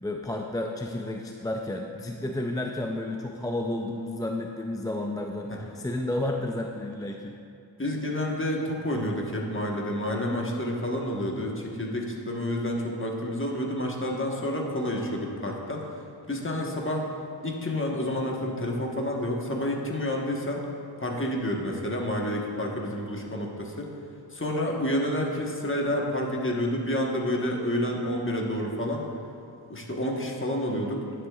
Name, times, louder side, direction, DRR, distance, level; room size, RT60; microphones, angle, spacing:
voice 1, 0.0-7.4, left 1 dB, 10° left, 2 dB, 0.3 m, -31 dB
voice 2, 7.8-15.9 16.3-17.1 17.4-20.6 21.0-23.9 24.3-29.0 29.7-31.0, left 1 dB, 25° left, -1 dB, 1.2 m, -29 dB
10.5 x 6.8 x 2.3 m, 2.5 s
cardioid pair, 45°, 47 cm